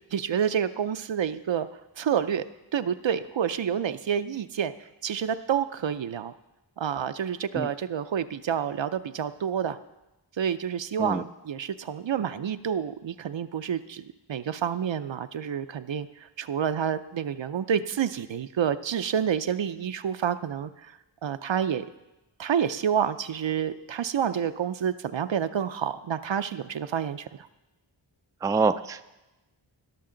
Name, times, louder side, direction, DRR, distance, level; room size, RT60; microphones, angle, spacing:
voice 1, 0.1-1.7 2.0-2.4 2.7-6.3 6.8-9.8 10.4-21.8 22.4-27.5, right 8 dB, 70° right, 12 dB, 0.6 m, -29 dB
voice 2, 28.4-29.0, right 4 dB, 10° right, 10 dB, 0.3 m, -25 dB
19.0 x 6.5 x 3.8 m, 0.99 s
wide cardioid pair, 40°, 47 cm